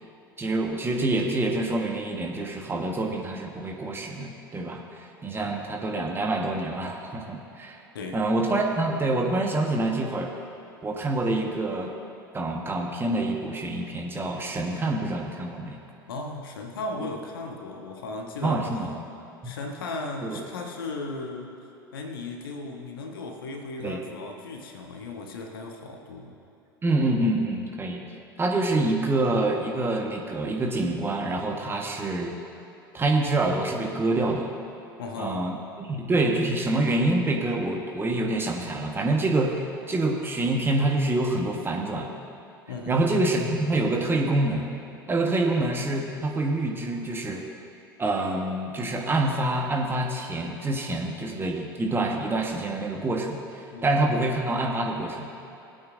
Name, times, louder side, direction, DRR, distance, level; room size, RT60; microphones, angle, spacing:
voice 1, 0.4-7.8 8.1-10.3 10.8-11.9 12.3-15.8 18.4-18.9 19.4-19.5 20.2-20.4 23.8-24.0 26.8-28.0 28.4-32.3 32.9-34.5 35.2-42.1 42.9-44.7 45.1-47.4 48.0-55.3, right 2 dB, 20° right, 1 dB, 1.4 m, -26 dB
voice 2, 16.1-18.7 19.4-21.6 21.9-26.4 35.0-35.5 42.7-43.0 53.7-53.9, left 3 dB, 70° left, 3 dB, 1.3 m, -36 dB
19.5 x 8.7 x 2.7 m, 2.9 s
figure-of-eight pair, 75°, 12 cm